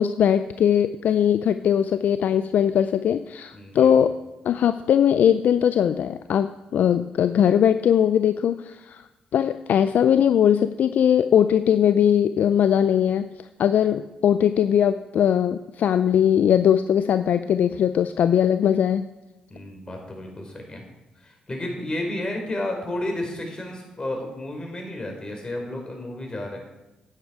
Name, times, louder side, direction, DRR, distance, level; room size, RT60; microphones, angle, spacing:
voice 1, 0.0-4.2 4.4-9.0 9.3-13.3 13.6-19.1, left 9 dB, 65° left, 11 dB, 0.4 m, -20 dB
voice 2, 3.5-3.9 19.5-20.8 21.2-26.6, left 1 dB, 30° left, 1 dB, 4.0 m, -32 dB
10.5 x 9.5 x 4.8 m, 1.0 s
supercardioid pair, 50°, 3 cm